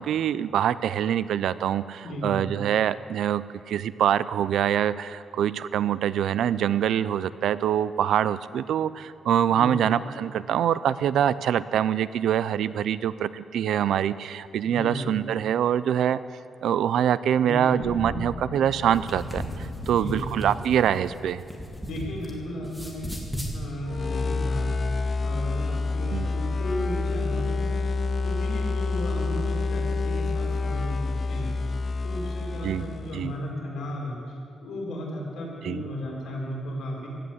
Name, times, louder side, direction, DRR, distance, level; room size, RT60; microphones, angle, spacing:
voice 1, 0.0-16.2 16.6-21.4 26.1-26.3 32.6-32.8 33.1-33.3 35.6-35.8, right 9 dB, 80° right, 16 dB, 0.5 m, -25 dB
voice 2, 2.0-2.4 9.5-9.9 14.6-15.1 17.4-17.7 19.9-20.2 21.8-23.1 23.5-24.7 25.2-27.9 28.2-31.7 32.0-34.2 34.6-37.1, left 1 dB, 70° left, -3 dB, 4.7 m, -35 dB
sound 1, 17.8-22.0, left 2 dB, 55° left, 4.8 m, -40 dB
sound 2, 18.9-22.3 22.6-23.5, equal, ahead, 1.9 m, -35 dB
sound 3, 23.8-33.3, left 3 dB, 35° left, 0.4 m, -28 dB
16.5 x 10.0 x 8.1 m, 2.4 s
wide cardioid pair, 165°, 0 cm